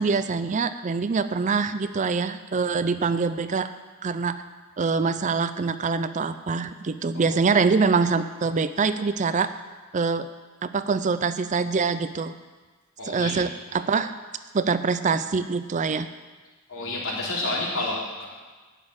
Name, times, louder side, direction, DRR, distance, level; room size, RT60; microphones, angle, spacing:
voice 1, 0.0-3.7 4.0-4.4 4.8-9.5 9.9-10.3 10.6-12.3 13.0-14.1 14.5-16.1, right 4 dB, 35° right, 12 dB, 0.4 m, -24 dB
voice 2, 13.0-13.3 16.7-18.2, left 2 dB, 65° left, -4 dB, 3.5 m, -29 dB
12.0 x 6.4 x 8.8 m, 1.3 s
head